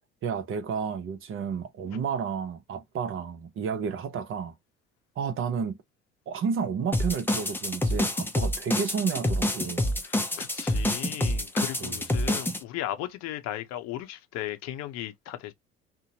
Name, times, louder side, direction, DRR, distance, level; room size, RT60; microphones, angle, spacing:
voice 1, 0.2-4.5 5.2-5.8 6.3-9.9 11.8-12.0, right 6 dB, 40° right, 0.7 m, -31 dB
sound 1, 6.9-12.6, left 1 dB, 5° left, 0.6 m, -27 dB
voice 2, 10.0-15.5, left 13 dB, 55° left, 0.7 m, -36 dB
2.8 x 2.1 x 2.7 m
hypercardioid pair, 65°, 31 cm